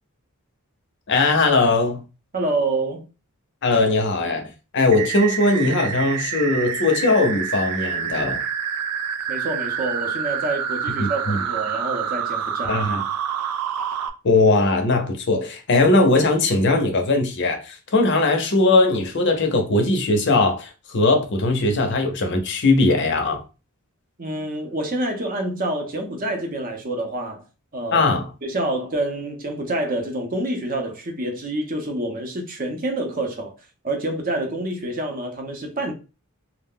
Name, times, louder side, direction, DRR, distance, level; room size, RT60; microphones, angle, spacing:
voice 1, 1.1-2.0 3.6-8.4 11.0-11.4 12.7-13.0 14.2-23.4 27.9-28.3, left 2 dB, 50° left, 0.5 m, -19 dB
voice 2, 2.3-3.0 9.3-12.8 24.2-27.4 27.7-28.0 28.4-33.5 33.8-35.9, right 2 dB, 40° right, 0.6 m, -27 dB
sound 1, 4.9-14.1, right 8 dB, 90° right, 0.3 m, -27 dB
2.3 x 2.1 x 3.5 m
head